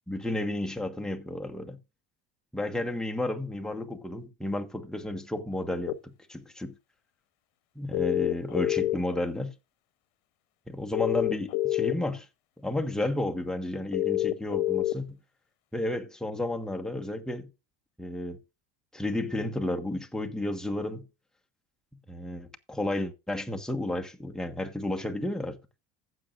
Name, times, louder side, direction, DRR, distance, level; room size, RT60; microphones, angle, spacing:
voice 1, 0.1-1.8 2.5-6.7 7.7-9.5 10.7-12.3 12.6-15.2 15.7-17.5 18.0-18.4 18.9-21.0 22.1-25.6, left 1 dB, ahead, 1.4 m, -32 dB
sound 1, 5.9-6.0 7.9-9.1 10.9-11.9 13.9-14.9, left 15 dB, 75° left, 0.9 m, -27 dB
15.0 x 7.8 x 2.5 m
supercardioid pair, 120°, 30 cm